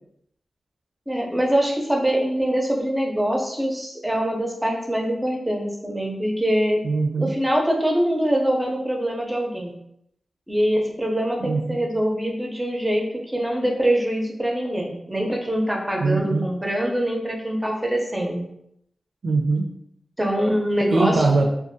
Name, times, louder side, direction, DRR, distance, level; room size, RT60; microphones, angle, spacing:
voice 1, 1.1-6.8 7.2-9.7 10.5-18.4 20.2-21.2, equal, 10° right, 0 dB, 0.5 m, -24 dB
voice 2, 6.8-7.3 11.4-11.8 16.0-16.5 19.2-19.7 20.9-21.5, right 3 dB, 85° right, 2 dB, 0.4 m, -21 dB
2.5 x 2.3 x 2.5 m, 0.75 s
wide cardioid pair, 120°, 0 cm